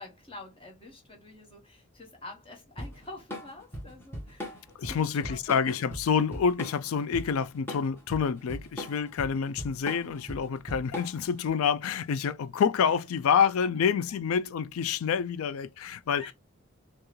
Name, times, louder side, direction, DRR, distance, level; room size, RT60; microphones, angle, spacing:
voice 1, 0.0-4.6 4.9-5.4 5.7-5.8 16.1-16.3, left 2 dB, 25° left, 1.4 m, -47 dB
Drum kit / Drum, 2.8-11.4, equal, 10° left, 1.3 m, -39 dB
voice 2, 4.8-16.3, left 6 dB, 85° left, 0.4 m, -27 dB
4.5 x 2.4 x 3.1 m
head